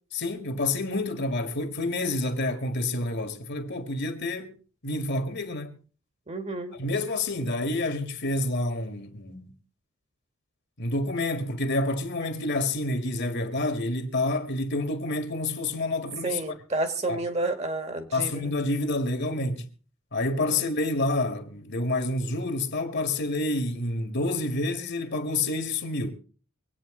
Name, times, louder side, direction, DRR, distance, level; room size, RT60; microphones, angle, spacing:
voice 1, 0.1-4.5 4.8-5.8 6.8-9.5 10.8-16.4 17.1-17.2 18.1-19.7 20.1-26.1, left 2 dB, 55° left, 1.9 m, -28 dB
voice 2, 6.3-6.7 16.2-18.5 20.4-20.6, right 2 dB, 30° right, 1.7 m, -31 dB
24.5 x 9.1 x 3.8 m
head